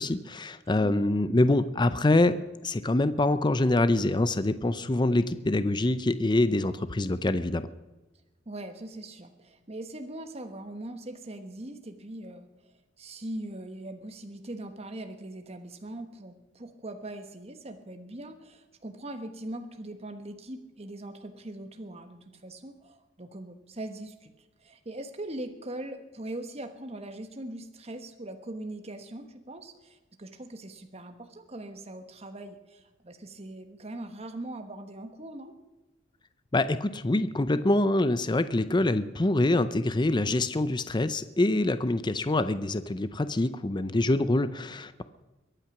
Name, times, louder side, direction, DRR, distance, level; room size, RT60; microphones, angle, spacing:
voice 1, 0.0-2.4 2.6-7.7 36.5-45.0, left 2 dB, 25° left, 13 dB, 0.5 m, -25 dB
voice 2, 0.8-1.2 8.5-12.7 13.0-24.3 24.6-35.5, right 1 dB, 35° right, 6 dB, 1.2 m, -41 dB
22.5 x 9.1 x 5.9 m, 1.1 s
head